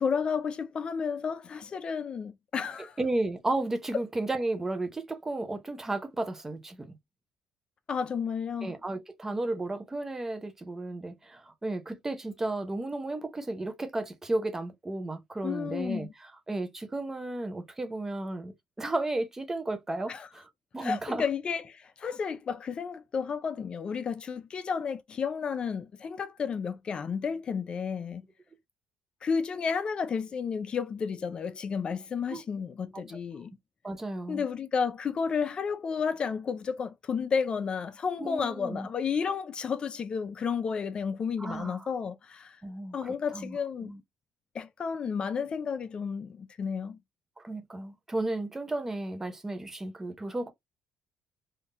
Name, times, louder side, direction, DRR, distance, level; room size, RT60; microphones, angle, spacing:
voice 1, 0.0-3.0 7.9-8.7 15.4-16.1 20.1-20.3 20.8-28.3 29.2-33.5 34.3-42.6 42.9-43.9 44.5-47.0, left 6 dB, 40° left, 0.4 m, -32 dB
voice 2, 3.0-7.0 8.6-20.5 20.7-21.2 32.3-32.4 32.9-33.0 33.8-34.4 38.2-38.9 41.4-41.9 42.6-44.0 47.4-50.5, right 2 dB, 15° right, 0.7 m, -33 dB
3.6 x 2.6 x 2.4 m
cardioid pair, 95°, 2 cm